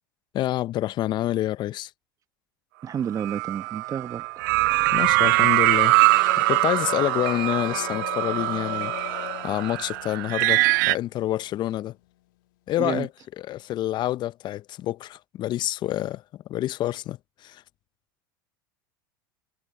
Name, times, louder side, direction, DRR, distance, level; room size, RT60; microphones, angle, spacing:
voice 1, 0.3-1.9 4.9-6.0 6.4-8.9 9.4-11.9 12.7-13.1 13.4-16.2 16.5-17.2 17.4-17.6, left 14 dB, 45° left, 0.7 m, -27 dB
voice 2, 2.8-4.4 12.8-13.1, right 8 dB, 30° right, 1.0 m, -30 dB
sound 1, 3.1-10.9, right 23 dB, 65° right, 0.4 m, -23 dB
sound 2, 4.5-11.6, left 19 dB, 70° left, 1.4 m, -39 dB
hypercardioid pair, 85°, 11 cm